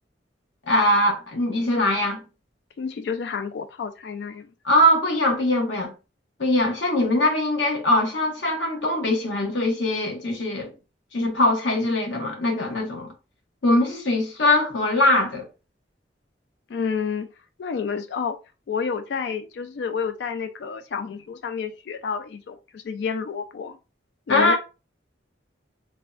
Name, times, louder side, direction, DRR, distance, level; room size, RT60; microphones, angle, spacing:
voice 1, 0.7-2.2 4.6-5.9 6.4-10.7 11.1-13.1 13.6-15.5 24.3-24.6, left 1 dB, 85° left, 0.9 m, -21 dB
voice 2, 2.8-4.5 16.7-17.3 17.6-18.4 18.7-23.8 24.3-24.6, left 6 dB, 65° left, 0.3 m, -30 dB
3.4 x 2.1 x 2.4 m
head